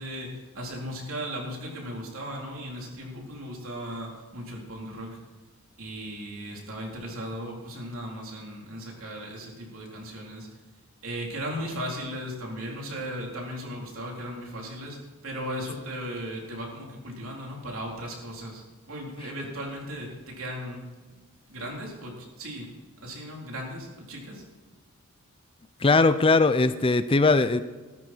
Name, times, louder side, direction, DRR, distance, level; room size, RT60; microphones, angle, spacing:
voice 1, 0.0-5.2 5.8-10.5 11.0-15.0 15.2-20.8 21.5-22.7 23.0-24.4, equal, 65° right, -1 dB, 4.0 m, -37 dB
voice 2, 25.8-27.6, left 3 dB, 25° left, 12 dB, 0.5 m, -20 dB
14.5 x 13.0 x 4.6 m, 1.3 s
head